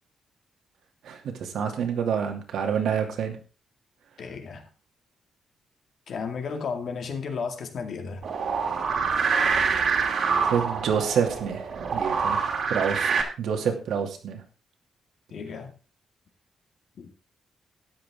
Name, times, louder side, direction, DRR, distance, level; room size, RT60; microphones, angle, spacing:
voice 1, 1.0-3.4 10.4-12.4 12.7-14.4, right 7 dB, 80° right, 2.6 m, -28 dB
voice 2, 4.2-4.6 6.1-8.2 15.3-15.7 17.0-17.1, left 5 dB, 50° left, 2.1 m, -33 dB
sound 1, 8.2-13.2, right 5 dB, 50° right, 2.5 m, -26 dB
13.0 x 10.5 x 3.7 m
wide cardioid pair, 180°, 0 cm